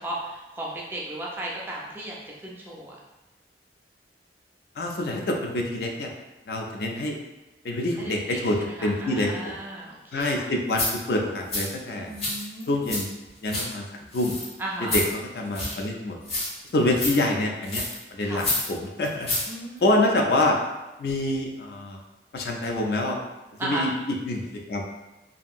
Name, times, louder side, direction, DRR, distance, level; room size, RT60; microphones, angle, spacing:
voice 1, 0.0-2.2 2.4-3.0 8.0-8.4 8.8-10.5 12.0-12.9 14.6-15.0 18.2-18.5 19.5-20.1 23.6-23.9, right 1 dB, 10° right, -4 dB, 0.4 m, -35 dB
voice 2, 4.8-6.1 6.5-7.2 7.6-9.6 10.1-12.1 12.7-13.1 13.4-13.8 14.1-14.4 14.8-16.2 16.7-17.9 18.1-19.3 19.8-20.6 21.0-22.0 22.3-23.2 23.6-23.9 24.3-24.8, left 1 dB, 60° left, 1 dB, 0.3 m, -26 dB
sound 1, 10.2-10.3 10.7-10.9 11.5-11.7 12.1-13.0 13.3-13.6 14.1-14.5 14.9-15.1 15.5-15.8 16.2-16.7 16.9-17.1 17.6-18.0 18.4-18.7 19.0-19.5 19.8-19.9, left 2 dB, 35° left, 0.8 m, -28 dB
2.8 x 2.5 x 2.3 m, 1.0 s
head